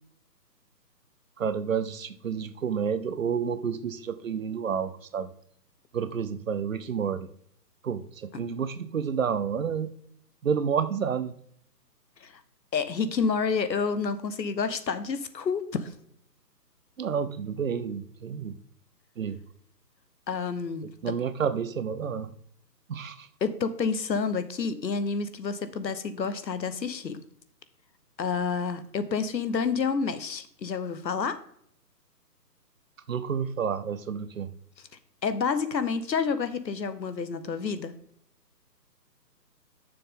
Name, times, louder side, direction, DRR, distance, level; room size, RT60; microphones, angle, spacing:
voice 1, 1.4-5.3 5.9-7.3 7.8-9.9 10.4-11.3 17.0-18.6 19.2-19.4 21.0-22.3 22.9-23.3 33.1-34.5, right 7 dB, 50° right, 13 dB, 0.7 m, -30 dB
voice 2, 12.7-15.9 20.3-21.2 23.4-27.2 28.2-31.4 35.2-37.9, left 5 dB, 85° left, 12 dB, 1.1 m, -29 dB
11.0 x 6.7 x 3.7 m, 0.68 s
hypercardioid pair, 165°, 50 cm